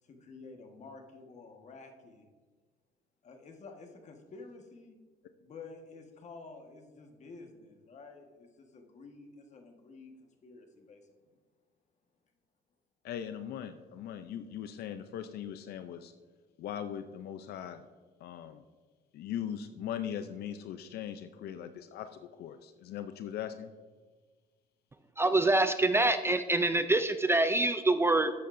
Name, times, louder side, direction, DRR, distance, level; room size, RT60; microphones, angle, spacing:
voice 1, 0.0-2.3 3.2-5.0 5.4-11.1, left 3 dB, 45° left, 4 dB, 1.4 m, -50 dB
voice 2, 13.0-16.1 16.6-17.9 18.2-18.6 19.1-23.7, left 9 dB, 70° left, 9 dB, 0.5 m, -40 dB
voice 3, 25.2-28.3, right 2 dB, 15° right, 10 dB, 0.4 m, -25 dB
12.5 x 8.4 x 2.6 m, 1.4 s
cardioid pair, 110°, 17 cm